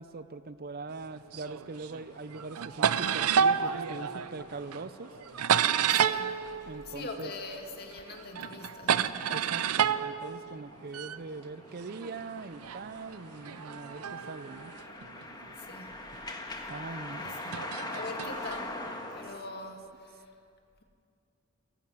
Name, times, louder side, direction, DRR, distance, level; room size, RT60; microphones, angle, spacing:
voice 1, 0.0-5.1 6.7-7.3 9.3-14.7 16.7-17.3, right 3 dB, 45° right, 13 dB, 0.6 m, -42 dB
sound 1, 1.3-2.0 2.3-7.6 7.9-11.2 11.9-15.4 16.1-16.3 17.3-18.6, right 7 dB, 85° right, 0.6 m, -30 dB
sound 2, 1.7-19.4, left 2 dB, 20° left, 1.6 m, -45 dB
voice 2, 5.9-6.4 6.8-9.3 15.2-15.3 15.6-15.9 17.2-17.6 17.9-18.8 19.1-20.3, left 2 dB, 45° left, 3 dB, 2.2 m, -42 dB
29.5 x 11.5 x 7.8 m, 2.5 s
head